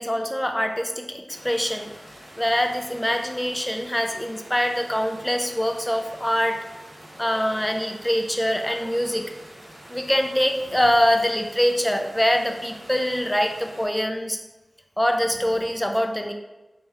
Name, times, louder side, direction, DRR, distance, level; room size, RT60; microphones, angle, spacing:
voice 1, 0.0-1.9 2.4-6.6 7.2-9.3 9.9-14.4 15.0-16.3, equal, 10° left, 5 dB, 0.4 m, -24 dB
sound 1, 1.3-13.9, equal, 35° right, 1.0 m, -46 dB
3.2 x 2.9 x 3.5 m, 1.0 s
wide cardioid pair, 80°, 0 cm